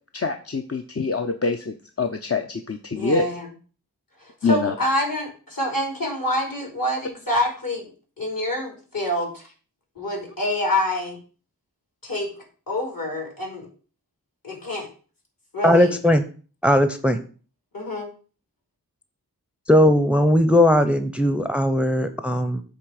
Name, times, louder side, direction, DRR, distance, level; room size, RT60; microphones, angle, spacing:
voice 1, 0.1-3.2 4.4-4.7, left 4 dB, 40° left, 5 dB, 0.7 m, -25 dB
voice 2, 2.9-3.5 4.2-9.5 10.0-11.2 12.0-13.7 14.4-14.9 15.5-16.0 17.7-18.1, left 1 dB, 65° left, 1 dB, 3.5 m, -27 dB
voice 3, 15.6-16.2 16.6-17.2 19.7-22.6, left 1 dB, 5° right, 10 dB, 0.7 m, -18 dB
8.1 x 3.4 x 6.4 m, 0.39 s
wide cardioid pair, 45°, 37 cm